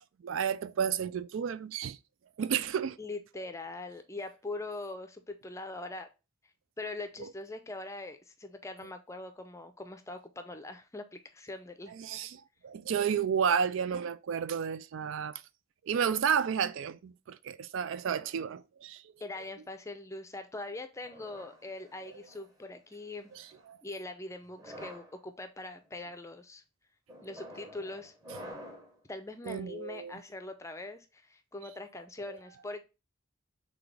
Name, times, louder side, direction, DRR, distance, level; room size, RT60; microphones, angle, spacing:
voice 1, 0.2-2.0 2.4-3.0 7.2-7.3 12.0-15.4 15.9-19.0 23.3-23.8 29.5-30.1, right 7 dB, 65° right, 0.3 m, -32 dB
voice 2, 3.0-6.1 6.8-11.9 19.2-23.3 23.8-26.6 27.2-28.1 29.1-32.8, left 2 dB, 15° left, 0.5 m, -42 dB
sound 1, 21.0-22.5 23.2-23.6 24.5-25.1 25.8-26.1 27.1-29.0, equal, 15° right, 1.0 m, -48 dB
4.0 x 3.4 x 3.3 m
head